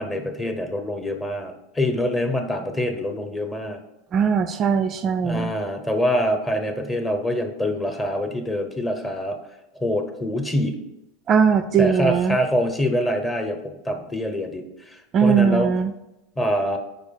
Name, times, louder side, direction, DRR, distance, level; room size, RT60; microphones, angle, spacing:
voice 1, 0.0-3.8 5.2-9.4 9.7-10.8 11.8-15.7 16.4-16.8, left 1 dB, 15° left, 5 dB, 0.9 m, -25 dB
voice 2, 4.1-5.5 11.3-12.4 15.1-15.9, right 6 dB, 35° right, 9 dB, 0.3 m, -20 dB
4.7 x 4.6 x 5.7 m, 0.94 s
supercardioid pair, 120°, 0 cm